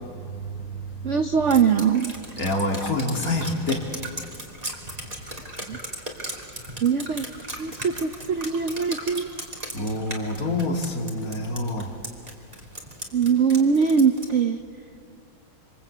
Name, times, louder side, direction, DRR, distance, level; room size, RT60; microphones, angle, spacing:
voice 1, 1.0-2.1 5.7-5.8 6.8-7.3 7.6-9.3 13.1-14.6, right 6 dB, 55° right, 8 dB, 0.8 m, -22 dB
Drip, 1.5-14.4, right 1 dB, 20° right, 2.8 m, -37 dB
voice 2, 2.4-3.8 9.7-11.9, left 2 dB, 45° left, 2 dB, 2.8 m, -27 dB
26.5 x 26.0 x 8.5 m, 2.4 s
omnidirectional pair, 2.2 m